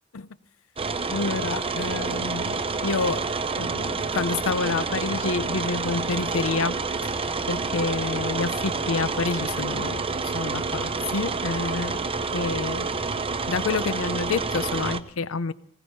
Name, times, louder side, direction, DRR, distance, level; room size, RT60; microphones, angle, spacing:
sound 1, 0.8-15.0, right 4 dB, 25° right, 0.8 m, -28 dB
voice 1, 1.1-3.2 3.6-12.0 12.3-12.9 13.5-15.5, left 4 dB, 80° left, 15 dB, 0.7 m, -28 dB
19.5 x 17.0 x 4.2 m, 0.63 s
head